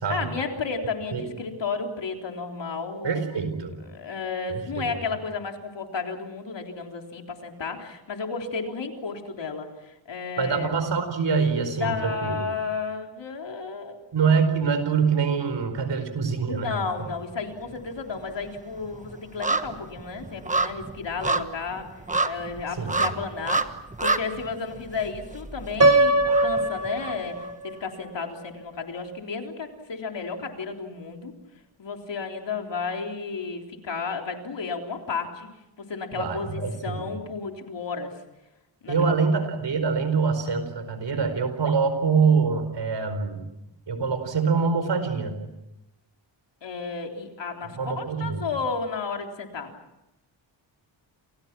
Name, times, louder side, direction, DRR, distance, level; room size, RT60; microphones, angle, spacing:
voice 1, 0.1-3.4 3.8-10.9 11.8-14.0 16.5-21.9 22.2-23.8 24.0-31.3 31.8-35.5 35.8-38.1 38.8-39.1 46.6-49.7, left 4 dB, 65° left, 3 dB, 3.7 m, -33 dB
voice 2, 3.0-3.8 4.5-4.9 10.4-12.4 14.1-16.7 22.8-23.0 36.2-37.0 38.9-43.4 43.9-45.4 47.8-48.5, right 5 dB, 65° right, 9 dB, 4.7 m, -25 dB
sound 1, 16.5-17.2 17.5-27.5 27.8-27.9, right 3 dB, 15° right, 1.2 m, -30 dB
Piano, 25.8-27.8, right 2 dB, 35° right, 1.4 m, -21 dB
29.0 x 28.5 x 6.1 m, 0.94 s
wide cardioid pair, 140°, 46 cm